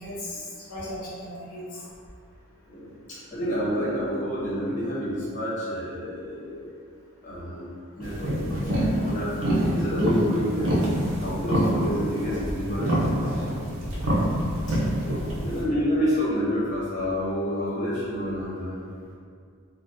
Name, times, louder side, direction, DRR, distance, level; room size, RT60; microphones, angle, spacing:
voice 1, 0.0-1.9 15.3-15.5, left 1 dB, 85° left, -9 dB, 0.7 m, -37 dB
voice 2, 2.7-6.7 7.2-10.7 11.2-13.6 14.7-14.8 15.4-18.8, equal, 35° left, -10 dB, 1.0 m, -29 dB
sound 1, 8.0-15.6, equal, 60° right, 0.6 m, -26 dB
2.7 x 2.1 x 3.5 m, 2.2 s
head